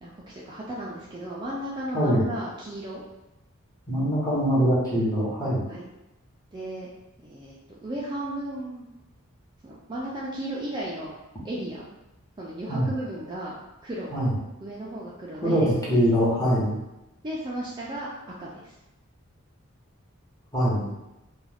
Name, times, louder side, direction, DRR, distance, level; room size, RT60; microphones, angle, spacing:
voice 1, 0.0-3.0 5.7-5.8 6.5-6.9 7.2-8.9 9.6-11.1 11.4-11.9 12.4-13.5 13.8-14.1 14.6-15.7 17.2-18.7, right 1 dB, 20° right, -5 dB, 0.3 m, -34 dB
voice 2, 3.9-5.7 12.7-12.9 14.1-14.3 15.4-16.8 20.5-20.9, equal, 15° left, -8 dB, 0.9 m, -23 dB
2.3 x 2.3 x 3.3 m, 0.95 s
head